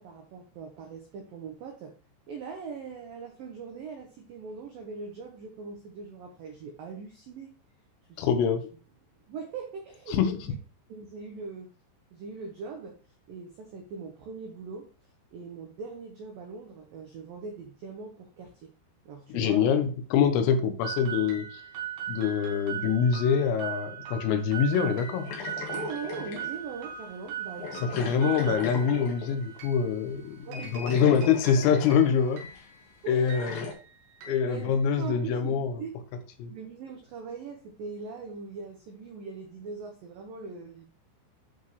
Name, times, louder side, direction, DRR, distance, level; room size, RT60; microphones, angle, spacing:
voice 1, 0.0-1.9 2.3-7.6 8.1-8.3 9.3-10.6 10.9-11.7 12.1-13.0 13.3-14.9 15.3-18.7 19.1-19.8 25.7-28.1 30.5-30.8 31.0-31.1 31.8-31.9 32.2-32.3 33.0-33.6 34.3-36.0 36.5-40.9, right 5 dB, 80° right, 2 dB, 2.0 m, -41 dB
voice 2, 8.2-8.7 10.1-10.4 19.3-21.6 22.1-25.3 27.8-32.5 33.1-33.7 34.3-35.8 36.4-36.5, left 7 dB, 90° left, 8 dB, 3.8 m, -25 dB
sound 1, 20.8-35.3, right 8 dB, 65° right, 3.3 m, -40 dB
sound 2, 25.2-26.6 27.6-29.5 30.5-30.6 30.8-32.2 32.5-32.6 33.3-33.7, left 5 dB, 55° left, 3.2 m, -38 dB
11.5 x 5.0 x 3.1 m, 0.36 s
omnidirectional pair, 5.8 m